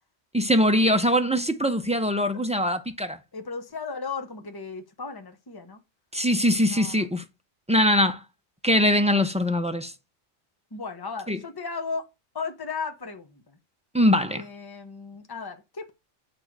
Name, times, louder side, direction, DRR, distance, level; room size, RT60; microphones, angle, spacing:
voice 1, 0.3-3.2 6.1-7.2 7.7-8.2 8.6-9.9 11.3-11.4 13.9-14.5, equal, 10° right, 0.3 m, -22 dB
voice 2, 3.3-5.8 6.7-7.1 10.7-12.1 12.3-13.4 14.3-15.9, left 4 dB, 20° left, 1.0 m, -35 dB
8.3 x 3.3 x 6.1 m
omnidirectional pair, 1.2 m